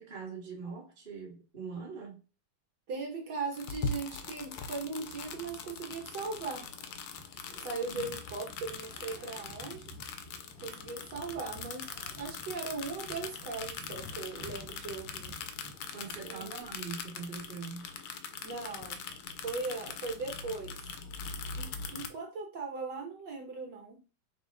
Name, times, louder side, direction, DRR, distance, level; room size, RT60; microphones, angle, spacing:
voice 1, 0.0-2.2 7.8-8.1 15.9-17.9, right 5 dB, 30° right, 1.1 m, -42 dB
voice 2, 2.9-6.7 7.6-9.9 10.6-15.3 16.2-16.5 18.4-19.0 19.4-20.7 21.6-24.0, right 4 dB, 60° right, 1.6 m, -39 dB
sound 1, 3.5-22.1, left 5 dB, 75° left, 0.9 m, -42 dB
sound 2, 5.0-16.6, equal, 10° left, 0.6 m, -53 dB
5.5 x 2.0 x 3.7 m
omnidirectional pair, 2.3 m